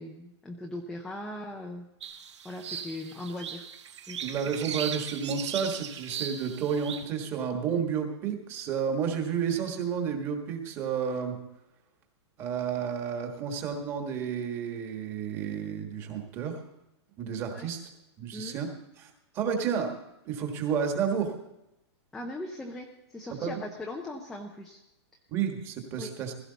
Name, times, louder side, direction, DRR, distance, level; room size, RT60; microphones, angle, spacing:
voice 1, 0.0-1.9 2.4-3.7 4.1-4.2 17.5-17.7 18.3-18.6 22.1-24.8 25.9-26.1, left 1 dB, ahead, 1 dB, 0.5 m, -39 dB
sound 1, 2.0-7.0, right 8 dB, 80° right, 1.5 m, -38 dB
voice 2, 4.2-11.4 12.4-16.6 17.2-17.9 18.2-18.7 19.0-19.9 20.2-21.3 23.4-23.6 25.3-26.3, right 7 dB, 15° right, 4 dB, 1.5 m, -31 dB
16.5 x 15.5 x 4.0 m, 0.90 s
supercardioid pair, 180°, 15 cm